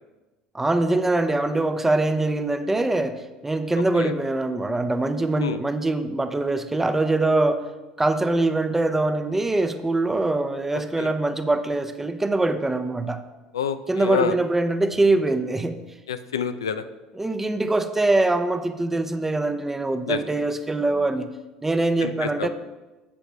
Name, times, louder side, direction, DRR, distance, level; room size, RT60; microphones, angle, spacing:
voice 1, 0.5-7.7 8.0-13.2 13.9-15.8 17.2-21.3 21.6-22.5, right 2 dB, 15° right, 9 dB, 0.8 m, -23 dB
voice 2, 13.5-14.4 16.1-16.8 20.1-20.2 22.0-22.5, left 7 dB, 85° left, 10 dB, 0.5 m, -27 dB
11.0 x 7.8 x 3.3 m, 1.1 s
hypercardioid pair, 70°, 2 cm